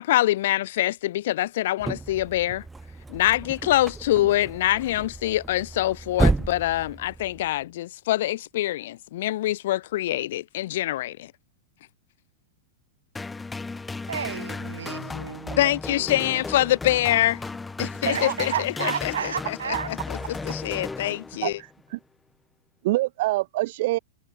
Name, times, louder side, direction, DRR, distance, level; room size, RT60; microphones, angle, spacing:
voice 1, 0.0-2.6 3.1-11.3 15.6-17.4 17.8-21.6, left 14 dB, 65° left, 2.1 m, -25 dB
sound 1, 1.8-7.6, right 3 dB, 10° right, 2.1 m, -31 dB
sound 2, 13.2-21.7, left 3 dB, 10° left, 1.4 m, -35 dB
voice 2, 14.1-15.7 17.8-20.4, right 7 dB, 80° right, 6.5 m, -33 dB
voice 3, 18.2-18.9 21.4-21.5 22.8-24.0, right 19 dB, 60° right, 0.5 m, -26 dB
hypercardioid pair, 105°, 0 cm